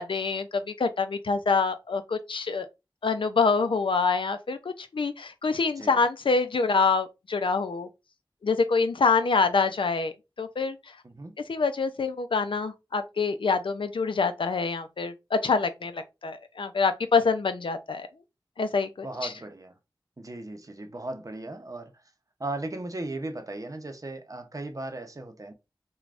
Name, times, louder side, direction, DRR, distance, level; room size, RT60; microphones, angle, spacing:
voice 1, 0.0-2.7 3.0-4.6 4.9-7.9 8.4-10.8 11.5-18.1 18.6-19.3, left 4 dB, 85° left, 0.4 m, -26 dB
voice 2, 19.0-19.7 20.2-21.9 22.4-25.5, right 2 dB, 40° right, 0.6 m, -37 dB
3.3 x 2.2 x 2.4 m
wide cardioid pair, 45°, 8 cm